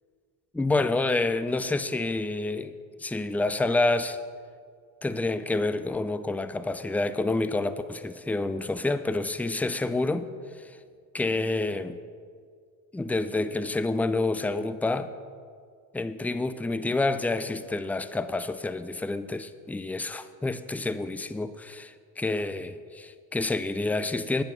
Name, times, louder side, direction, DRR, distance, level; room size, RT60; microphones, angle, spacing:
voice 1, 0.5-4.2 5.0-10.3 10.6-10.8 11.1-12.0 12.9-15.1 15.9-24.4, left 2 dB, 5° left, 12 dB, 0.4 m, -28 dB
9.0 x 8.7 x 5.9 m, 2.1 s
supercardioid pair, 75°, 45 cm